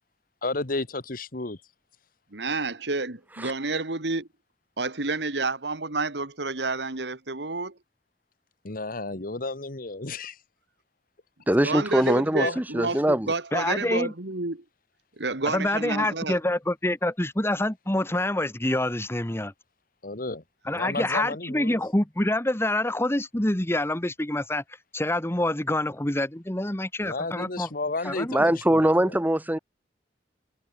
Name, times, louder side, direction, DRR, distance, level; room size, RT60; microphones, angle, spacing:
voice 1, 0.4-1.6 8.6-10.4 12.0-12.1 12.4-12.6 20.0-20.4 20.7-21.8 27.0-29.2, left 3 dB, 55° left, 1.7 m, -32 dB
voice 2, 2.3-4.3 4.8-7.7 11.6-14.6 15.2-16.4, right 3 dB, 80° right, 2.1 m, -29 dB
voice 3, 11.5-13.3 28.3-29.6, right 1 dB, 10° right, 1.0 m, -22 dB
voice 4, 13.5-14.1 15.4-19.5 20.7-24.6 24.9-27.7 28.0-28.5, left 1 dB, 15° left, 1.4 m, -26 dB
head